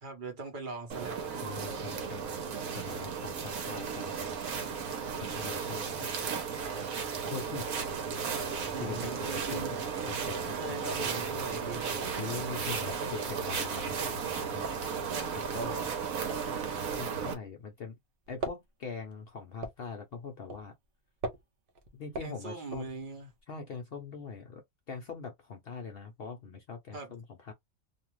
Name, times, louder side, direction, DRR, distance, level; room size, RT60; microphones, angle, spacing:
voice 1, 0.0-1.2 8.7-9.7 10.5-12.0 15.1-15.3 22.2-23.3 26.9-27.1, right 3 dB, 40° right, 0.9 m, -40 dB
sound 1, 0.9-17.3, right 6 dB, 75° right, 1.2 m, -35 dB
voice 2, 1.3-2.3 2.7-4.2 5.2-6.1 7.2-7.7 8.8-11.0 12.2-14.7 15.3-15.9 17.0-18.0 18.3-20.7 21.9-22.9 23.5-27.5, left 5 dB, 60° left, 0.6 m, -42 dB
sound 2, 10.9-17.8 18.1-23.4, right 2 dB, 55° right, 0.6 m, -43 dB
2.6 x 2.4 x 3.0 m
omnidirectional pair, 1.5 m